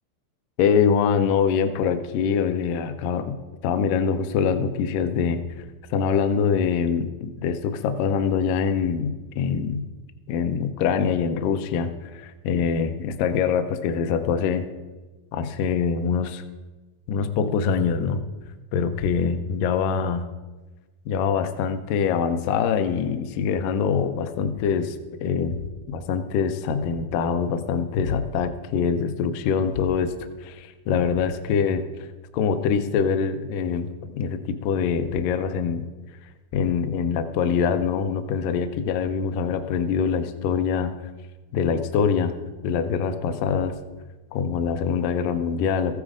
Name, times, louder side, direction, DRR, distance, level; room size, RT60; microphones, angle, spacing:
voice 1, 0.6-3.4 3.6-5.4 5.9-9.9 10.3-14.7 15.3-16.4 17.1-18.2 18.7-20.2 21.1-25.6 25.9-30.1 30.4-31.9 32.3-35.9 36.5-41.0 41.5-42.4 42.6-43.8 44.3-46.0, left 6 dB, 80° left, 9 dB, 2.1 m, -24 dB
14.0 x 9.7 x 5.0 m, 1.2 s
omnidirectional pair, 4.3 m